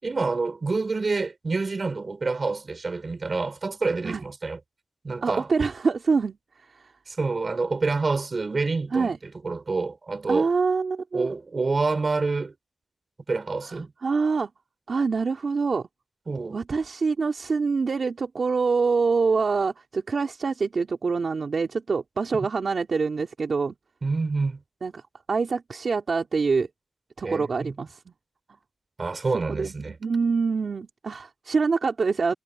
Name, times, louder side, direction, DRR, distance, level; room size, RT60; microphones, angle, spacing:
voice 1, 0.0-4.6 5.0-5.5 7.1-10.5 11.1-12.5 13.3-13.9 16.3-16.6 24.0-24.6 27.2-27.7 29.0-30.0, right 3 dB, 40° right, 7.1 m, -27 dB
voice 2, 5.2-6.4 6.7-6.9 8.9-9.2 10.3-11.3 14.0-14.5 14.9-15.9 16.5-23.7 24.8-25.0 25.3-26.7 27.2-28.1 29.5-32.3, right 4 dB, 60° right, 3.2 m, -25 dB
wide cardioid pair, 130°, 0 cm